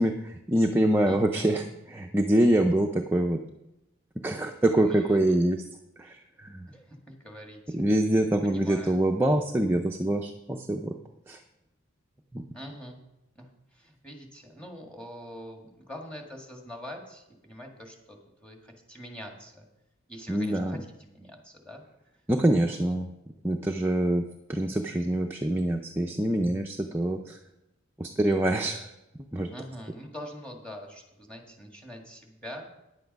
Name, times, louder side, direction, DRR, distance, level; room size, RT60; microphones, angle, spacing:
voice 1, 0.0-3.4 4.2-5.6 6.0-6.6 7.7-10.9 11.3-11.4 12.3-12.4 20.3-20.8 22.3-23.1 23.4-24.2 24.5-27.4 28.0-28.8 29.3-29.5, right 1 dB, 10° right, 2 dB, 0.5 m, -25 dB
voice 2, 1.0-1.7 4.7-5.4 6.5-7.8 8.1-9.0 12.5-13.0 13.4-19.7 20.1-21.8 22.6-22.8 29.5-32.7, equal, 5° left, 1 dB, 1.7 m, -44 dB
10.0 x 8.3 x 5.3 m, 0.91 s
head